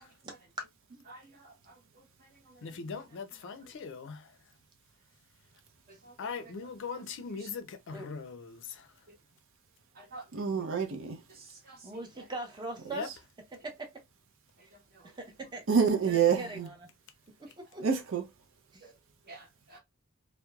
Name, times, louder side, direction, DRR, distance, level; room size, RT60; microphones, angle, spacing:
voice 1, 1.1-2.9 3.6-3.9 5.9-6.5 7.0-7.1 7.3-7.5 9.1-9.2 9.9-10.6 11.3-12.3 14.6-15.1 18.8-18.9 19.2-19.8, right 2 dB, 45° right, 1.0 m, -53 dB
voice 2, 2.6-4.3 6.2-8.9 12.9-13.1, left 5 dB, 60° left, 0.4 m, -40 dB
voice 3, 10.3-11.2 15.7-16.7 17.8-18.2, right 6 dB, 65° right, 0.6 m, -27 dB
voice 4, 11.8-13.1 13.6-13.9 15.2-15.6 16.1-16.8 17.4-17.8 18.7-18.9, right 2 dB, 20° right, 0.7 m, -41 dB
2.8 x 2.1 x 2.3 m
head